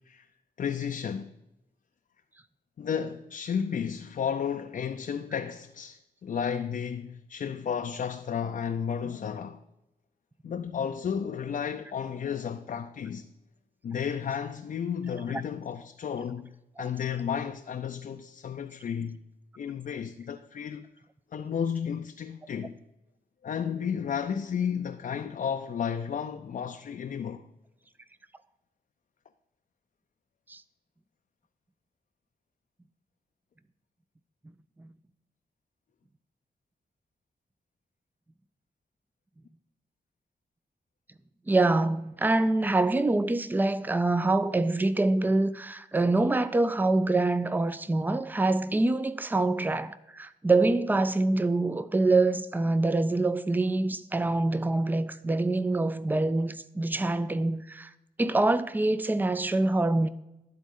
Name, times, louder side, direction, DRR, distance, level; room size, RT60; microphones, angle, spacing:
voice 1, 0.6-1.3 2.8-9.6 10.4-13.3 13.8-19.2 19.6-20.9 21.3-22.8 23.4-27.5, left 7 dB, 55° left, 0.4 m, -33 dB
voice 2, 41.5-57.9 58.2-60.1, right 2 dB, 10° right, 0.4 m, -25 dB
11.5 x 4.1 x 3.7 m
cardioid pair, 75°, 16 cm